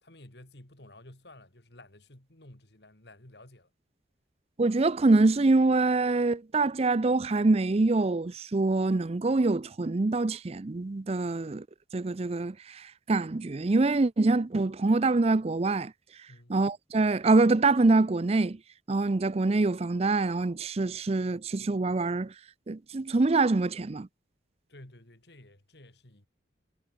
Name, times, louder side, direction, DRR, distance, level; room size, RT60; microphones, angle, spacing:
voice 1, 0.0-3.7 16.3-16.6 24.7-26.3, left 1 dB, 60° left, 3.3 m, -52 dB
voice 2, 4.6-11.6 11.9-12.5 13.1-15.9 16.5-18.6 18.9-22.3 22.7-24.1, right 3 dB, 35° right, 0.5 m, -25 dB
head